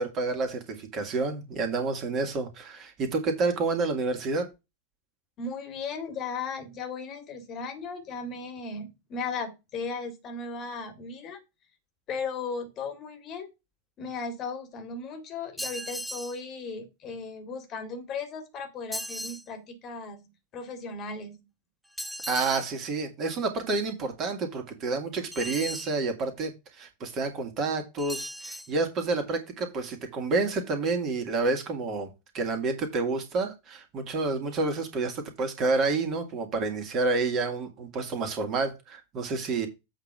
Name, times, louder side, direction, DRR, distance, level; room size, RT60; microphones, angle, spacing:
voice 1, 0.0-4.5 22.3-39.7, right 3 dB, 30° right, 2.3 m, -29 dB
voice 2, 5.4-11.4 12.1-13.5 14.0-21.5, left 4 dB, 35° left, 2.1 m, -36 dB
sound 1, 15.6-16.4 18.9-19.4 22.0-22.7 25.3-25.9 28.0-28.7, equal, ahead, 0.6 m, -37 dB
8.2 x 3.9 x 6.2 m
figure-of-eight pair, 90°, 0 cm